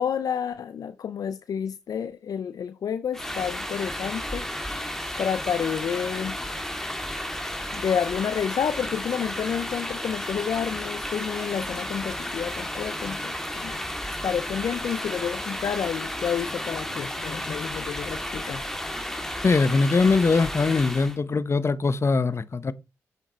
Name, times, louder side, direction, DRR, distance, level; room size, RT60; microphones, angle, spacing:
voice 1, 0.0-4.5 5.2-6.4 7.7-13.8 14.2-18.6, left 8 dB, 65° left, 0.6 m, -29 dB
sound 1, 3.1-21.2, left 1 dB, 5° left, 2.3 m, -33 dB
voice 2, 19.4-22.7, left 4 dB, 40° left, 1.0 m, -22 dB
8.2 x 7.5 x 4.4 m
supercardioid pair, 45°, 7 cm